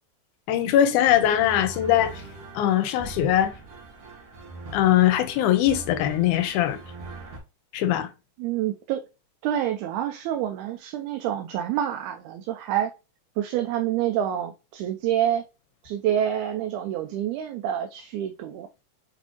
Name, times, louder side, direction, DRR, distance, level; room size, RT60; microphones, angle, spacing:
voice 1, 0.5-2.2 2.5-3.5 4.7-6.8 7.7-8.1, left 11 dB, 85° left, 2.1 m, -21 dB
sound 1, 1.1-7.4, right 3 dB, 60° right, 1.6 m, -41 dB
voice 2, 8.4-9.0 9.4-12.9 13.4-15.4 15.8-18.7, right 10 dB, 80° right, 2.0 m, -27 dB
6.1 x 2.6 x 2.8 m
omnidirectional pair, 3.6 m